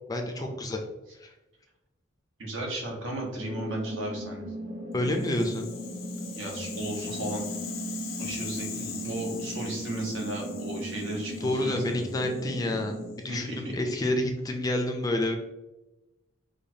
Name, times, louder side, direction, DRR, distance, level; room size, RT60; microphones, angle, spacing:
voice 1, 0.1-0.8 1.2-1.3 4.9-5.7 8.7-9.2 11.4-15.4, left 1 dB, 20° left, 3 dB, 0.3 m, -29 dB
voice 2, 2.4-4.4 6.3-7.5 8.2-12.0 13.3-13.9, right 1 dB, 75° right, -2 dB, 1.1 m, -35 dB
sound 1, 3.4-13.1, right 1 dB, 30° right, 0.7 m, -37 dB
Rattle (instrument), 5.0-13.2, left 7 dB, 90° left, 0.6 m, -42 dB
4.9 x 2.2 x 2.7 m, 1.0 s
head